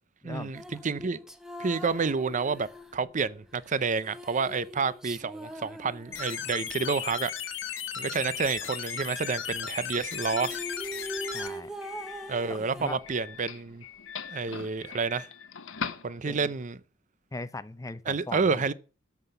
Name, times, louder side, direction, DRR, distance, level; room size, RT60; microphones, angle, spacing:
voice 1, 0.2-1.2 1.6-7.5 8.0-10.6 12.3-13.8 14.3-15.3 16.0-16.8 18.1-18.7, right 5 dB, 40° right, 0.6 m, -29 dB
sound 1, 0.5-6.7 10.0-10.1 10.3-13.5, equal, 5° right, 0.9 m, -42 dB
sound 2, 6.1-11.5, left 8 dB, 70° left, 1.4 m, -36 dB
Doorbell, 7.6-16.6, left 6 dB, 85° left, 1.1 m, -44 dB
voice 2, 11.3-11.7 12.5-13.0 16.3-16.5 17.3-18.7, left 2 dB, 15° left, 0.6 m, -39 dB
13.5 x 5.8 x 6.9 m
head